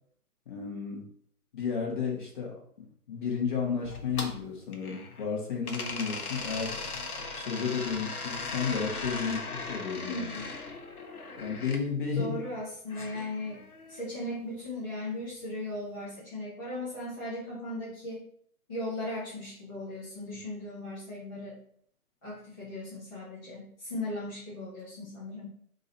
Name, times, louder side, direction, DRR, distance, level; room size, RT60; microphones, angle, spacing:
voice 1, 0.5-1.0 1.5-2.6 3.1-6.8 7.3-10.3 11.4-12.4, left 6 dB, 35° left, -2 dB, 1.3 m, -32 dB
sound 1, 3.8-5.3 5.6-11.8 12.9-14.0, left 3 dB, 70° left, 0.9 m, -38 dB
voice 2, 10.1-10.5 12.2-18.2 18.7-21.6 22.2-25.5, left 1 dB, 15° left, -11 dB, 0.7 m, -37 dB
3.8 x 2.8 x 4.2 m, 0.62 s
figure-of-eight pair, 135°, 45 cm